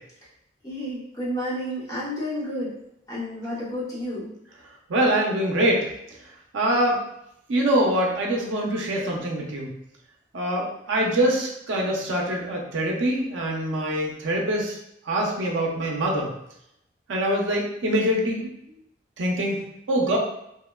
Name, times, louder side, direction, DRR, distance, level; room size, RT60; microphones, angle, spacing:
voice 1, 0.6-2.7 3.1-4.3, equal, 20° left, -8 dB, 0.7 m, -31 dB
voice 2, 4.9-5.9 6.5-7.0 7.5-9.7 10.3-14.8 15.1-16.3 17.1-18.5 19.2-19.6 19.9-20.2, right 1 dB, 80° right, -1 dB, 0.5 m, -24 dB
3.0 x 2.1 x 2.2 m, 0.79 s
head